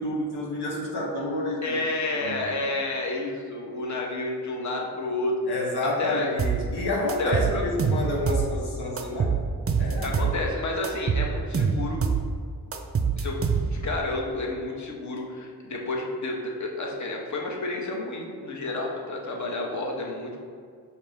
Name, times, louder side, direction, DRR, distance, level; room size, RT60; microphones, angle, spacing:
voice 1, 0.0-1.8 2.1-2.6 5.5-9.4 9.8-10.3, left 1 dB, 85° left, -1 dB, 0.7 m, -29 dB
voice 2, 1.6-5.4 5.8-6.3 7.2-7.7 10.0-12.0 13.2-13.4 13.7-20.4, left 2 dB, 50° left, -1 dB, 0.8 m, -30 dB
sound 1, 6.4-6.6 7.1-8.5 9.0-10.4 10.8-12.3 12.7-13.9, right 6 dB, 40° right, 0.4 m, -25 dB
5.0 x 2.7 x 3.4 m, 2.2 s
cardioid pair, 55°, 38 cm